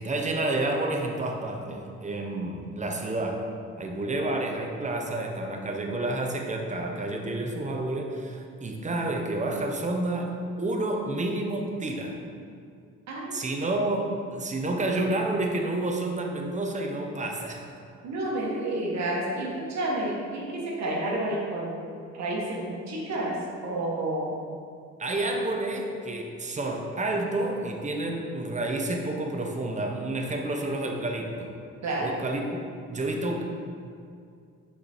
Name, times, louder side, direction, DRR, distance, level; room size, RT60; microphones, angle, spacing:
voice 1, 0.0-3.4 3.8-12.2 13.3-14.1 14.3-17.6 25.0-31.5 32.0-32.6 32.9-33.4, right 2 dB, 25° right, 2 dB, 0.9 m, -29 dB
voice 2, 13.1-13.4 18.0-21.7 22.1-24.4 31.8-32.1, right 1 dB, 60° right, -3 dB, 1.4 m, -30 dB
5.8 x 4.9 x 4.4 m, 2.4 s
cardioid pair, 90°, 30 cm